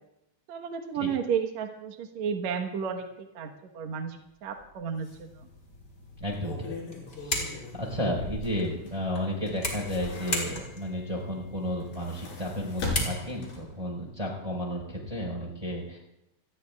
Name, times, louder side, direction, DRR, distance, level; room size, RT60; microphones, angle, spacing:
voice 1, 0.5-3.5 3.7-4.2 4.4-5.1, right 7 dB, 65° right, 3 dB, 1.8 m, -32 dB
sound 1, 4.5-4.6 5.0-5.2 6.1-9.2 9.5-10.9 11.7-13.8 14.2-14.3, left 3 dB, 75° left, 7.5 m, -39 dB
sound 2, 5.1-13.6, left 1 dB, 20° left, 4.3 m, -38 dB
voice 2, 6.2-6.7 7.2-16.0, equal, 10° right, -2 dB, 4.1 m, -32 dB
28.5 x 20.5 x 2.4 m, 0.87 s
omnidirectional pair, 4.8 m